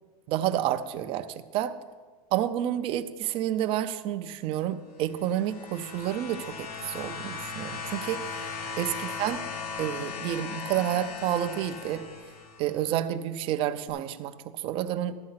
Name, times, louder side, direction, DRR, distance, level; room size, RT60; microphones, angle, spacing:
voice 1, 0.3-1.3 1.5-1.7 2.3-8.2 8.8-9.4 9.8-12.0 12.6-14.3 14.6-15.2, right 11 dB, 30° right, 10 dB, 0.5 m, -29 dB
sound 1, 5.1-12.8 13.9-14.0, left 5 dB, 80° left, 1.7 m, -38 dB
12.5 x 7.6 x 5.7 m, 1.4 s
supercardioid pair, 165°, 19 cm